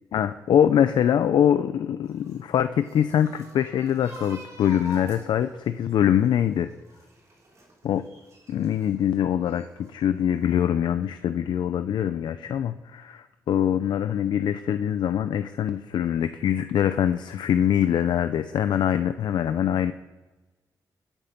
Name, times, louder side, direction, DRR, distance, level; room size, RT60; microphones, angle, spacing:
voice 1, 0.1-6.7 7.8-8.0 8.5-19.9, left 9 dB, 80° left, 10 dB, 0.7 m, -23 dB
sound 1, 2.1-8.9 9.4-10.2 10.5-10.6, equal, 40° right, 5.2 m, -46 dB
26.5 x 9.1 x 6.0 m, 1.2 s
wide cardioid pair, 150°, 8 cm